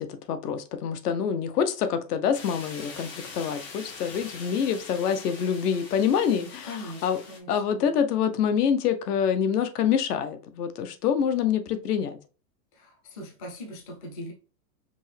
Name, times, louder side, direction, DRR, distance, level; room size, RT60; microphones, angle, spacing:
voice 1, 0.0-6.7 7.0-7.2 7.5-12.2, left 8 dB, 70° left, 0.8 m, -26 dB
sound 1, 2.3-7.4, left 4 dB, 85° left, 1.7 m, -43 dB
voice 2, 6.4-7.9 12.7-14.3, left 1 dB, 25° left, 0.4 m, -41 dB
5.3 x 2.8 x 3.2 m
supercardioid pair, 175°, 49 cm